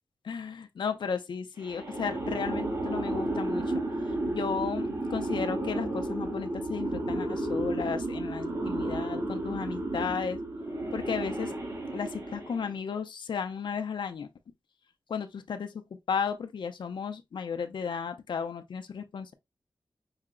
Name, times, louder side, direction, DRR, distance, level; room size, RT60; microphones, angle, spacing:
voice 1, 0.2-10.4 10.9-11.5 11.9-14.3 15.1-15.8 16.1-19.3, left 6 dB, 80° left, 0.5 m, -34 dB
sound 1, 1.6-12.8, right 1 dB, 40° right, 2.1 m, -32 dB
5.6 x 2.1 x 3.7 m
wide cardioid pair, 140°, 8 cm